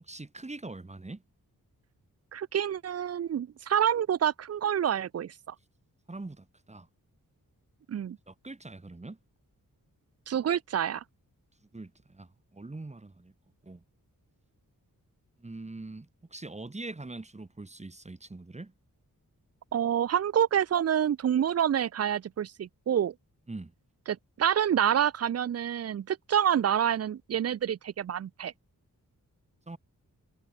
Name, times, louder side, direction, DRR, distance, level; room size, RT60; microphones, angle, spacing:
voice 1, 0.0-1.2 6.1-6.9 8.3-9.2 11.7-13.3 13.6-13.8 15.4-18.7 23.5-23.7 29.7-29.8, right 2 dB, 20° right, 1.8 m, -43 dB
voice 2, 2.3-5.5 7.9-8.2 10.3-11.0 19.7-23.1 24.1-28.5, right 9 dB, 45° right, 0.4 m, -27 dB
wide cardioid pair, 170°, 35 cm